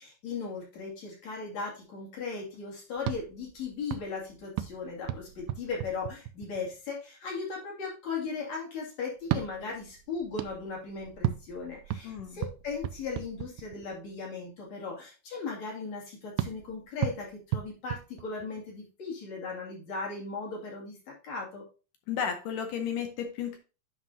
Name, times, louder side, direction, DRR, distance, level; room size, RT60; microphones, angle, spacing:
voice 1, 0.0-21.0 21.2-21.7, left 4 dB, 50° left, -3 dB, 3.5 m, -37 dB
sound 1, 3.0-6.8 9.2-14.0 16.4-18.8, right 13 dB, 80° right, 2.0 m, -36 dB
voice 2, 12.0-12.4 22.1-23.6, left 8 dB, 75° left, 6 dB, 2.1 m, -33 dB
9.6 x 5.8 x 2.7 m, 0.33 s
omnidirectional pair, 4.3 m